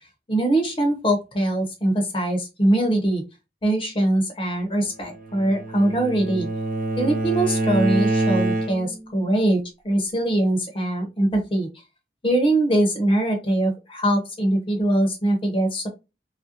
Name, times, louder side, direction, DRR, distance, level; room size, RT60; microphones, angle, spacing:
voice 1, 0.3-3.2 3.6-6.5 7.0-9.6 9.8-11.7 12.2-15.9, right 1 dB, 30° left, 4 dB, 0.7 m, -22 dB
Bowed string instrument, 5.1-9.1, right 2 dB, 50° right, 0.4 m, -25 dB
3.1 x 2.5 x 2.7 m, 0.26 s
head